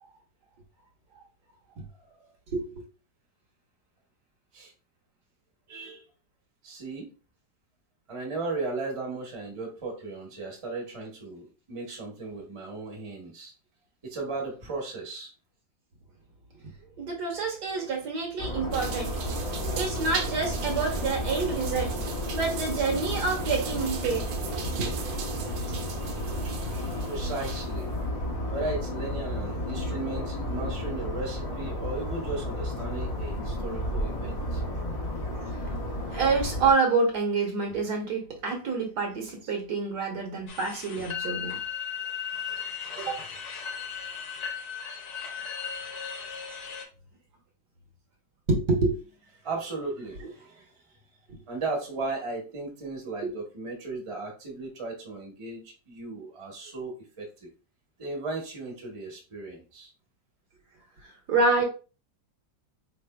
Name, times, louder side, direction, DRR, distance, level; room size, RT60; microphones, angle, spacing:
voice 1, 5.7-6.0 6.6-7.1 8.1-13.5 14.0-15.3 27.1-27.9 28.5-34.6 49.4-50.7 51.5-57.5 58.0-59.9, right 3 dB, 25° right, 0.8 m, -36 dB
voice 2, 17.0-19.4 19.7-21.9 22.3-24.3 24.8-24.9 35.6-35.7 36.1-41.6 43.0-43.2 48.5-49.0 50.2-50.3 53.2-53.3 61.3-61.6, right 4 dB, 65° right, 1.4 m, -27 dB
Ambience City Valencia, 18.4-36.7, left 1 dB, 40° left, 0.5 m, -32 dB
sound 1, 18.7-27.8, right 6 dB, 90° right, 1.4 m, -37 dB
sound 2, 40.5-46.9, left 7 dB, 65° left, 1.1 m, -36 dB
4.2 x 3.3 x 2.2 m
omnidirectional pair, 2.0 m